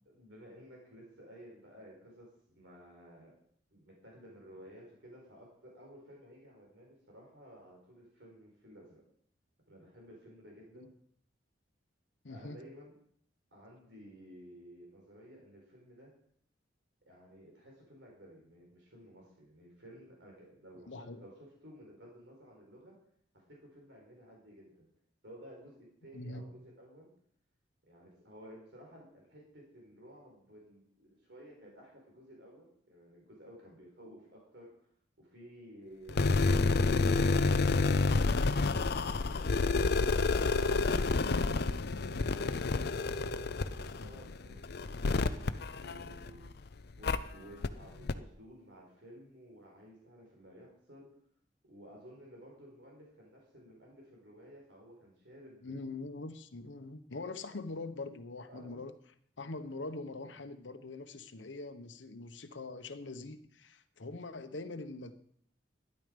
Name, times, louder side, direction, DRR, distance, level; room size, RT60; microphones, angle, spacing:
voice 1, 0.1-3.4 3.7-9.0 9.7-10.9 12.3-12.9 13.5-16.1 17.1-23.0 23.3-24.9 25.2-27.1 27.9-34.9 35.2-41.6 42.5-46.7 47.0-51.1 51.6-56.0 58.5-58.9, equal, 70° right, -1 dB, 4.6 m, -54 dB
voice 2, 12.2-12.6 20.9-21.2 26.1-26.6 44.0-44.1 55.6-58.9 59.4-65.2, left 3 dB, 90° left, 9 dB, 1.0 m, -43 dB
sound 1, 36.1-46.5 47.0-47.2 47.6-47.7 48.1-48.2, left 3 dB, 60° left, 0.6 m, -29 dB
12.5 x 11.0 x 5.2 m, 0.66 s
head